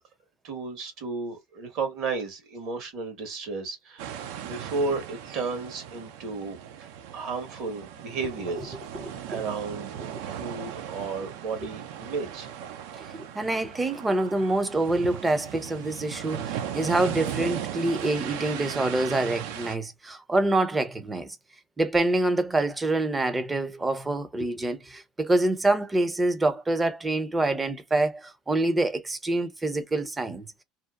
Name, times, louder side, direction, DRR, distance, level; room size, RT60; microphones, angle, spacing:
voice 1, 0.4-6.9 7.1-8.8 9.3-12.5, right 4 dB, 60° right, 1.3 m, -33 dB
sound 1, 4.0-19.8, right 9 dB, 75° right, 0.4 m, -37 dB
voice 2, 9.0-9.4 13.0-21.4 21.8-30.6, right 2 dB, 15° right, 0.5 m, -26 dB
2.7 x 2.1 x 2.3 m
supercardioid pair, 115°, 0 cm